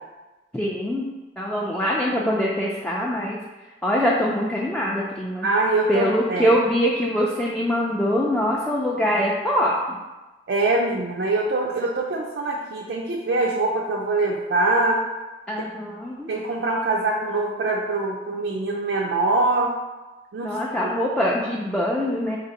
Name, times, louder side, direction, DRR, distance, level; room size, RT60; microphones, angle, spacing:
voice 1, 0.5-1.1 1.4-3.4 3.8-5.5 5.9-10.0 15.5-16.3 20.4-22.4, equal, 5° left, -4 dB, 0.3 m, -23 dB
voice 2, 5.4-6.5 10.5-15.0 16.3-19.7 20.3-20.5, right 2 dB, 85° right, -2 dB, 0.4 m, -23 dB
4.1 x 2.6 x 3.9 m, 1.1 s
head